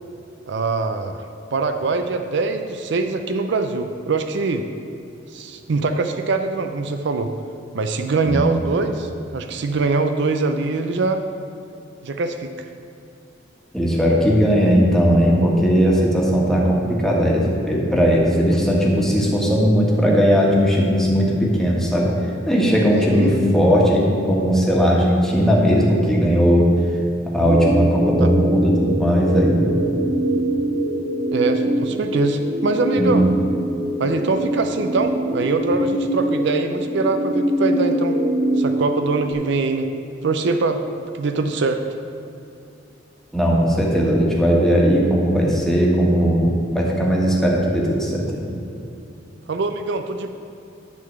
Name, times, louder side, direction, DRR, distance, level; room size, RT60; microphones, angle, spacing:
voice 1, 0.5-1.2 1.5-4.6 5.3-7.3 7.7-11.2 12.0-12.7 23.1-23.4 28.2-28.3 31.3-33.3 34.0-38.2 38.6-39.9 40.2-40.8 41.1-41.8 49.5-50.3, right 3 dB, 65° right, 7 dB, 0.5 m, -23 dB
voice 2, 8.3-8.6 13.7-22.1 22.5-26.6 27.3-29.7 32.9-33.2 43.3-48.5, equal, 5° left, -4 dB, 1.5 m, -18 dB
sound 1, 27.4-39.3, equal, 30° right, 0.8 m, -23 dB
10.5 x 4.0 x 7.4 m, 2.7 s
head